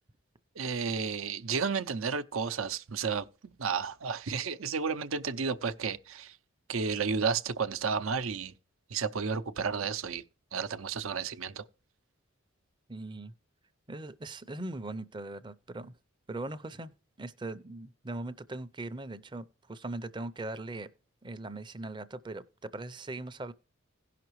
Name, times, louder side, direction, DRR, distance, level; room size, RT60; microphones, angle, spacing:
voice 1, 0.6-3.3 3.6-6.3 6.7-8.5 8.9-10.2 10.5-11.6, right 5 dB, 80° right, 0.7 m, -32 dB
voice 2, 12.9-13.3 13.9-15.9 16.3-16.9 17.2-20.9 21.2-23.5, right 2 dB, 20° right, 0.5 m, -40 dB
16.5 x 5.8 x 3.1 m
head